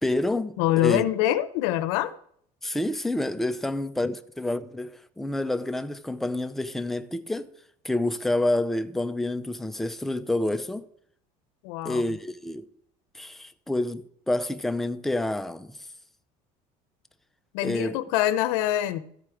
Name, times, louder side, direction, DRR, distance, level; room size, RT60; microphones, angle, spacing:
voice 1, 0.0-0.5 0.8-1.0 2.6-7.5 7.8-10.8 11.8-12.6 13.1-15.8 17.6-18.0, left 1 dB, ahead, 0.5 m, -28 dB
voice 2, 0.6-2.1 11.6-12.0 17.5-19.0, left 13 dB, 85° left, 0.7 m, -24 dB
13.5 x 4.5 x 4.9 m
cardioid pair, 125°, 17 cm